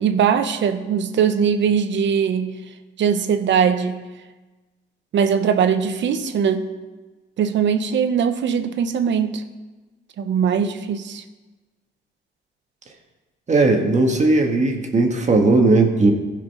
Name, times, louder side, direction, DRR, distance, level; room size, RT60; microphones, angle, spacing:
voice 1, 0.0-2.5 3.0-4.0 5.1-6.7 7.4-9.4 10.2-11.2, right 7 dB, 65° right, 9 dB, 0.9 m, -20 dB
voice 2, 13.5-16.1, right 2 dB, 35° right, 2 dB, 1.6 m, -17 dB
15.5 x 5.3 x 5.5 m, 1.2 s
cardioid pair, 90°, 20 cm